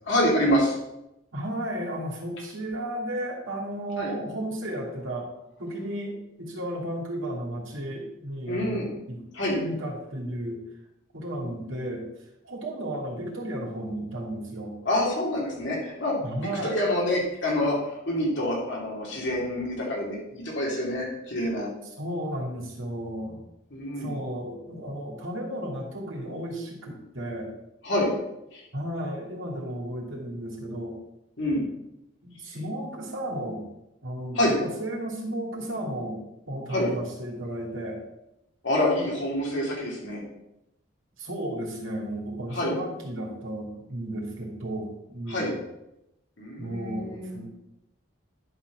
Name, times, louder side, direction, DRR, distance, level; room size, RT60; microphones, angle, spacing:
voice 1, 0.1-0.8 4.0-4.1 8.5-8.9 9.3-9.6 14.8-16.2 16.6-21.7 23.7-24.2 27.8-28.1 28.5-28.6 31.4-31.7 34.3-34.6 36.7-36.9 38.6-40.2 42.5-42.8 45.3-45.5 46.4-47.5, left 1 dB, 60° left, -3 dB, 2.8 m, -26 dB
voice 2, 1.3-5.3 5.6-9.2 9.5-10.6 11.1-12.0 12.4-14.7 16.2-16.8 22.0-23.5 24.0-27.5 28.7-31.0 32.2-33.6 34.0-36.2 36.5-38.0 41.2-45.6 46.6-47.5, right 1 dB, 75° right, -1 dB, 2.6 m, -34 dB
11.0 x 4.5 x 6.1 m, 0.88 s
head